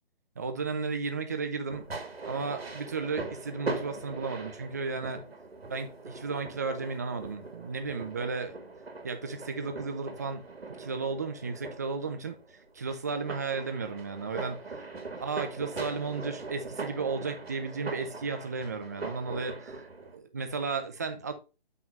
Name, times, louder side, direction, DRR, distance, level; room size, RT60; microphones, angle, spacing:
voice 1, 0.4-1.9 2.2-5.2 5.7-8.6 9.0-12.4 12.8-14.6 15.2-19.9 20.1-21.3, right 4 dB, 15° right, 0.5 m, -34 dB
sound 1, 1.7-20.2, right 3 dB, 85° right, 2.3 m, -41 dB
7.1 x 6.1 x 2.6 m
hypercardioid pair, 160°, 30 cm